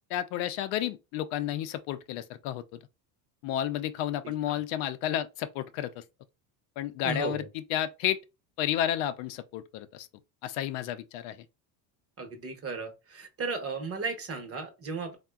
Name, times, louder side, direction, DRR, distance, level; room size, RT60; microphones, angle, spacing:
voice 1, 0.1-2.8 3.4-6.0 6.8-8.2 8.6-10.1 10.4-11.4, left 11 dB, 70° left, 0.5 m, -31 dB
voice 2, 7.0-7.5 12.2-15.2, right 4 dB, 30° right, 0.8 m, -35 dB
3.4 x 2.1 x 2.3 m
supercardioid pair, 120°, 49 cm